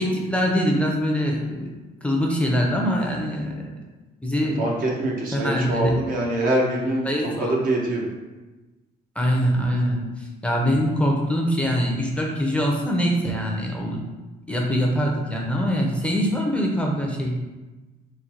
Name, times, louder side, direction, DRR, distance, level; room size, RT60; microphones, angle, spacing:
voice 1, 0.0-1.7 2.0-3.6 4.2-4.6 5.3-5.9 7.0-7.5 9.2-14.0 14.5-17.4, equal, 5° left, -1 dB, 0.6 m, -23 dB
voice 2, 4.6-7.1 7.4-8.0, right 1 dB, 55° right, -1 dB, 1.0 m, -24 dB
3.9 x 2.2 x 4.4 m, 1.2 s
cardioid pair, 110°, 17 cm